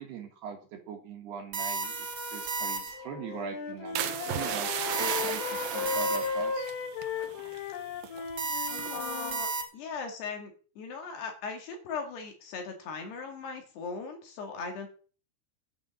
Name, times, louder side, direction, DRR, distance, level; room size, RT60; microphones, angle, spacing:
voice 1, 0.0-2.1 2.3-4.0 4.3-6.7, right 6 dB, 60° right, 3 dB, 3.3 m, -41 dB
sound 1, 1.5-3.2 4.9-6.6 8.4-9.6, right 3 dB, 40° right, 2.2 m, -34 dB
Wind instrument woodwind instrument, 3.0-9.4, left 5 dB, 80° left, 4.3 m, -35 dB
sound 2, 4.0-8.3 8.8-9.1, right 10 dB, 85° right, 2.0 m, -35 dB
voice 2, 8.7-14.9, left 5 dB, 60° left, 4 dB, 3.9 m, -39 dB
12.5 x 8.7 x 6.4 m, 0.39 s
omnidirectional pair, 5.8 m